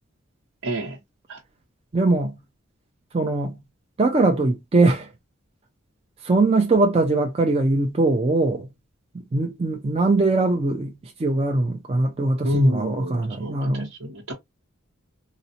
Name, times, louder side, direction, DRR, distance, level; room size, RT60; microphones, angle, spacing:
voice 1, 0.6-1.0 1.3-1.4 12.4-14.3, equal, 75° right, 0.9 m, -28 dB
voice 2, 1.9-2.4 3.1-3.6 4.0-5.1 6.2-8.7 9.1-13.9, right 2 dB, 25° right, 0.4 m, -21 dB
3.9 x 2.1 x 2.7 m
head